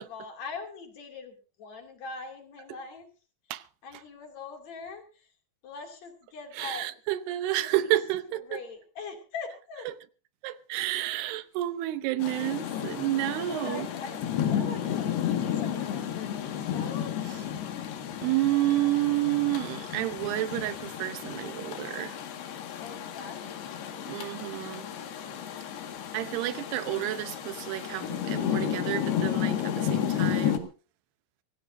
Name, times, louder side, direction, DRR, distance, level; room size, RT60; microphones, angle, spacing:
voice 1, 0.0-3.1 3.8-5.3 5.6-6.9 7.6-8.0 8.3-9.9 13.4-17.1 22.8-23.7, left 4 dB, 45° left, 3.6 m, -42 dB
voice 2, 6.6-8.6 9.9-10.0 10.4-13.9 18.2-22.2 24.1-24.9 26.1-30.7, right 15 dB, 80° right, 2.9 m, -30 dB
Rain, 12.2-30.6, left 9 dB, 75° left, 3.9 m, -32 dB
25.0 x 16.5 x 2.7 m
omnidirectional pair, 4.7 m